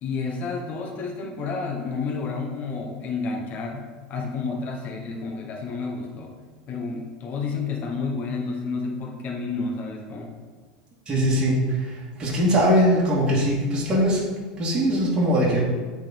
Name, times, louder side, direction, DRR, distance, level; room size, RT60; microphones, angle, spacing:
voice 1, 0.0-6.3 6.7-10.4, left 4 dB, 40° left, 1 dB, 1.1 m, -30 dB
voice 2, 11.1-14.2 14.6-15.6, equal, 20° right, -6 dB, 2.1 m, -21 dB
7.6 x 4.1 x 4.4 m, 1.4 s
supercardioid pair, 120°, 4 cm